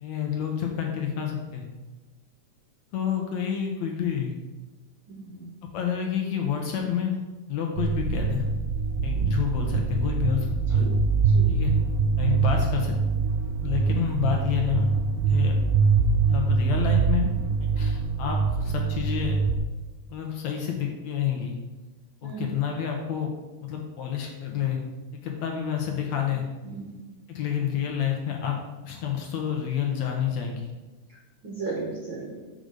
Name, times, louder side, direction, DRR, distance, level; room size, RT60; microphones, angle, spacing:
voice 1, 0.0-1.7 2.9-4.3 5.6-7.2 7.5-8.4 9.0-10.9 11.5-11.7 12.2-13.0 13.6-14.9 15.3-15.5 16.3-17.3 17.6-19.4 20.1-21.6 22.2-23.3 23.6-24.8 25.2-26.5 27.3-28.6 28.8-30.7, left 8 dB, 70° left, 2 dB, 1.9 m, -29 dB
voice 2, 5.1-5.5 10.7-10.9 11.3-11.5 22.2-22.4 26.6-26.9 31.4-32.4, right 4 dB, 60° right, -4 dB, 1.3 m, -35 dB
sound 1, 7.8-19.6, right 5 dB, 80° right, 1.6 m, -24 dB
5.2 x 5.1 x 6.4 m, 1.2 s
omnidirectional pair, 3.7 m